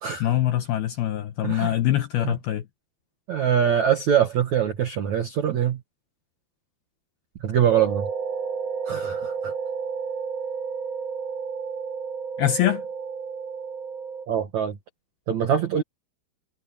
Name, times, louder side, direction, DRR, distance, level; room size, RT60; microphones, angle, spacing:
voice 1, 0.2-2.7 12.4-12.8, left 12 dB, 75° left, 2.4 m, -23 dB
voice 2, 1.4-1.7 2.2-2.3 3.3-5.8 7.4-8.1 8.9-9.5 14.3-14.8 15.3-15.8, right 9 dB, 70° right, 1.7 m, -23 dB
sound 1, 7.7-14.3, right 6 dB, 50° right, 2.1 m, -31 dB
omnidirectional pair, 5.6 m